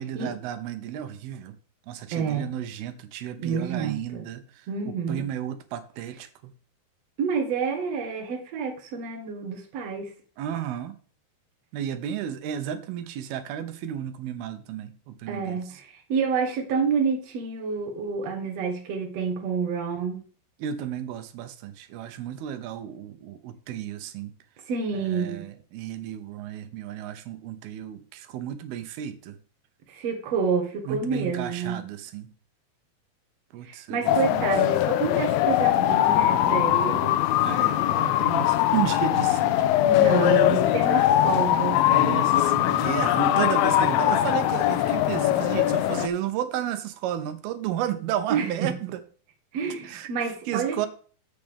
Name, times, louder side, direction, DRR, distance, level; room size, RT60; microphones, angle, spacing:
voice 1, 0.0-1.6 1.9-6.5 10.4-11.0 11.7-15.8 20.6-24.3 24.9-29.4 30.9-32.3 33.5-34.5 37.4-40.5 40.9-41.1 41.9-49.0 49.8-50.9, right 10 dB, 85° right, 2.7 m, -33 dB
voice 2, 2.1-2.5 3.4-4.2 4.7-5.2 7.2-10.1 15.3-20.2 24.7-25.5 29.9-31.8 33.6-37.2 39.8-41.8 48.3-48.7 49.5-50.9, right 6 dB, 55° right, 2.3 m, -28 dB
sound 1, 34.1-46.1, left 13 dB, 80° left, 2.3 m, -21 dB
10.5 x 8.0 x 3.5 m
omnidirectional pair, 4.3 m